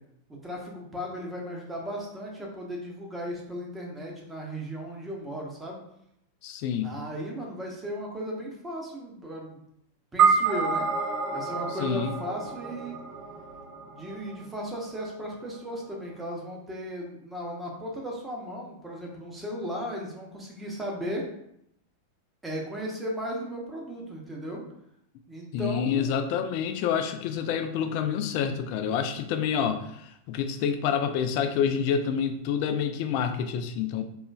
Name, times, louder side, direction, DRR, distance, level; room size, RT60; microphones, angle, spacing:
voice 1, 0.3-5.8 6.8-9.6 10.1-10.9 11.3-13.0 13.9-21.2 22.4-24.6 25.3-26.2, equal, 10° right, -2 dB, 0.9 m, -36 dB
voice 2, 6.4-6.9 11.8-12.1 25.5-34.0, left 7 dB, 45° left, 8 dB, 0.3 m, -28 dB
sound 1, 10.2-14.7, right 5 dB, 35° right, 0.7 m, -27 dB
3.9 x 2.9 x 2.3 m, 0.75 s
figure-of-eight pair, 90°, 0 cm